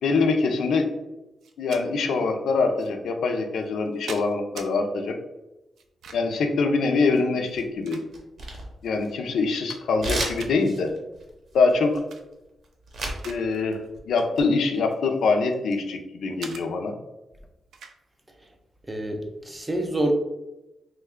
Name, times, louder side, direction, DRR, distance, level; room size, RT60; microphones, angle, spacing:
voice 1, 0.0-0.9 1.6-5.1 6.1-8.0 8.8-10.9 11.5-12.0 13.2-16.9, left 4 dB, 80° left, 5 dB, 0.4 m, -24 dB
sound 1, 1.4-1.9 2.8-2.9 3.6-4.7 5.8-6.4 7.4-8.5 9.0-9.1 9.4-10.1 10.4-10.6 11.9-12.2 12.6-13.4 13.7-14.0 14.7-15.9 16.4-16.6 17.7-18.0, right 5 dB, 90° right, 0.3 m, -43 dB
sound 2, 7.2-7.8 8.1-9.4 10.0-13.3 13.5-14.4, right 2 dB, 55° right, 0.7 m, -33 dB
voice 2, 18.9-20.1, right 1 dB, 10° right, 4 dB, 0.4 m, -27 dB
3.1 x 2.2 x 3.5 m, 0.98 s
wide cardioid pair, 170°, 0 cm